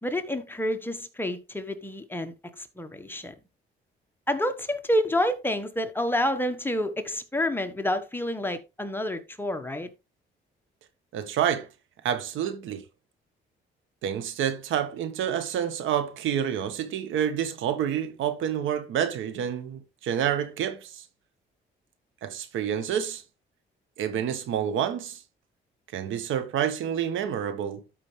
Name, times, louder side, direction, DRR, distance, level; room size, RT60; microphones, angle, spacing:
voice 1, 0.0-3.3 4.3-9.9, left 1 dB, 10° left, 1.4 m, -29 dB
voice 2, 11.1-11.7 12.0-12.8 14.0-21.0 22.2-23.2 24.0-25.2 25.9-27.8, right 9 dB, 85° right, 1.4 m, -28 dB
12.5 x 5.3 x 3.3 m
cardioid pair, 90°, 20 cm